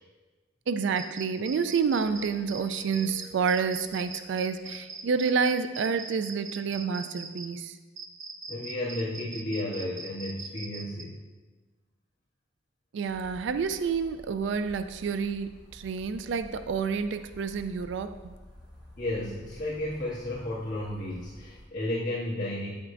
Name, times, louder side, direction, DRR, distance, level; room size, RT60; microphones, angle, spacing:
voice 1, 0.7-7.8 12.9-18.3, right 5 dB, 70° right, 10 dB, 0.3 m, -29 dB
sound 1, 1.0-7.5 8.0-11.0, right 4 dB, 90° right, 0.8 m, -41 dB
Glass, 1.6-5.2 6.1-6.3, left 2 dB, 25° left, 1.8 m, -55 dB
voice 2, 8.5-11.1 19.0-22.7, left 1 dB, 40° left, -13 dB, 1.9 m, -33 dB
sound 2, 13.0-21.6, left 1 dB, 5° right, 2.2 m, -50 dB
8.6 x 7.9 x 2.5 m, 1.3 s
head